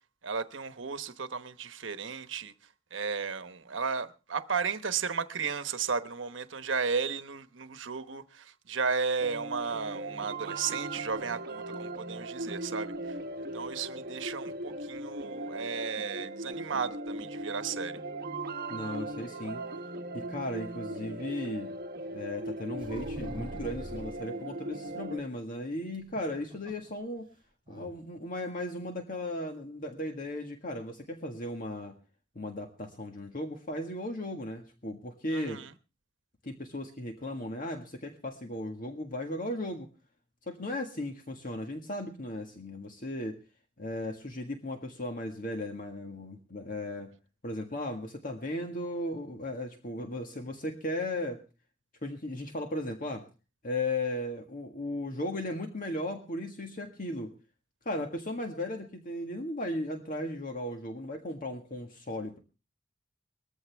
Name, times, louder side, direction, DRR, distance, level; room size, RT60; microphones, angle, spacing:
voice 1, 0.2-2.5 2.9-13.2 13.5-18.0 35.3-35.7, right 5 dB, 80° right, 1.1 m, -34 dB
sound 1, 9.2-25.2, right 2 dB, 50° right, 1.2 m, -39 dB
voice 2, 18.7-19.6 20.1-21.7 22.1-27.3 27.7-32.0 32.3-35.6 36.4-39.9 40.5-43.4 43.8-47.1 47.4-51.4 52.0-53.2 53.6-57.3 57.8-62.4, left 1 dB, 45° left, 1.7 m, -36 dB
sound 2, 22.8-24.2 25.9-26.9 27.2-27.3 27.7-27.9, equal, 25° right, 7.2 m, -43 dB
20.5 x 14.5 x 3.5 m
head